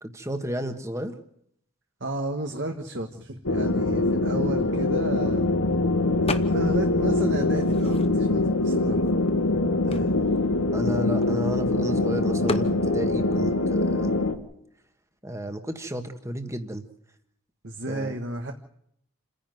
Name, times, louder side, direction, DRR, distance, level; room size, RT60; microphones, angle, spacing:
voice 1, 0.0-1.2 10.7-14.2 15.2-16.8 17.9-18.1, equal, 15° right, 7 dB, 1.6 m, -32 dB
voice 2, 2.0-5.4 6.2-9.1 9.9-10.1 17.6-18.5, right 1 dB, 55° right, 4 dB, 1.5 m, -32 dB
sound 1, 3.4-14.3, left 2 dB, 85° left, 1.9 m, -23 dB
sound 2, 6.3-6.9 7.2-8.4 9.1-9.2 9.4-11.6 12.5-12.8, left 3 dB, 25° left, 0.9 m, -35 dB
28.5 x 10.5 x 9.2 m, 0.72 s
head